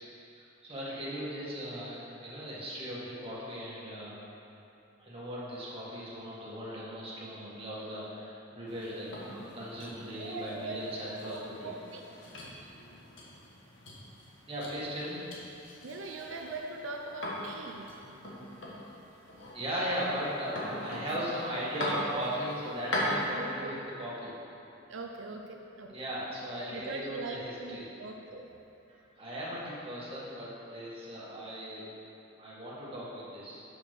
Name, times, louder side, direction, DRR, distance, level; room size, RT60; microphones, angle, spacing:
voice 1, 0.6-4.2 5.0-11.7 14.5-15.3 19.5-24.3 25.9-27.9 28.9-31.8 32.4-33.6, equal, 30° right, -8 dB, 1.9 m, -38 dB
sound 1, 8.7-23.3, left 1 dB, 70° left, 1.5 m, -41 dB
voice 2, 10.0-11.0 11.3-12.5 15.8-18.0 21.0-21.2 22.9-23.8 24.9-25.9 26.7-28.5, right 3 dB, 85° right, 2 dB, 0.5 m, -41 dB
6.3 x 5.8 x 6.1 m, 2.9 s
head